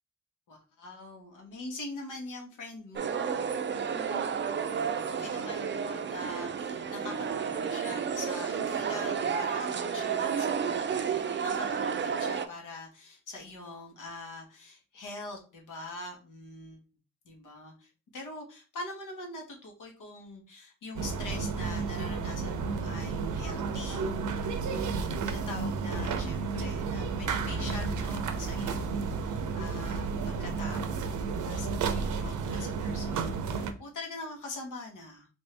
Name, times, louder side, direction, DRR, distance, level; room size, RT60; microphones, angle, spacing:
voice 1, 0.5-3.4 3.7-4.3 5.2-16.8 17.2-35.3, left 2 dB, 90° left, 1 dB, 1.2 m, -44 dB
sound 1, 3.0-12.5, right 7 dB, 40° right, 0.4 m, -31 dB
sound 2, 21.0-33.7, right 4 dB, 80° right, 0.6 m, -32 dB
3.5 x 2.7 x 3.3 m, 0.34 s
cardioid pair, 90°, 30 cm